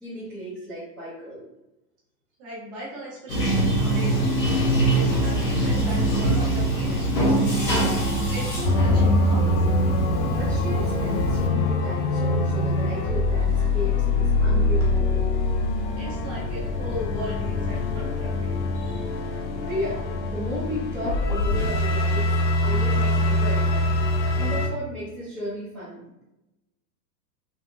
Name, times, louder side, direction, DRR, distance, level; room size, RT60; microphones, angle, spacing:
voice 1, 0.0-1.4 10.1-15.3 19.2-23.8 24.2-26.0, equal, ahead, -14 dB, 0.5 m, -34 dB
voice 2, 2.4-4.3 4.9-8.0 8.3-9.6 16.0-19.1 22.8-22.9, equal, 30° right, -5 dB, 1.2 m, -37 dB
Bathtub (filling or washing), 3.3-11.5, right 1 dB, 80° left, 1.2 m, -23 dB
sound 1, 8.6-24.7, left 2 dB, 50° left, 0.5 m, -24 dB
3.6 x 2.0 x 2.5 m, 0.93 s
hypercardioid pair, 130°, 48 cm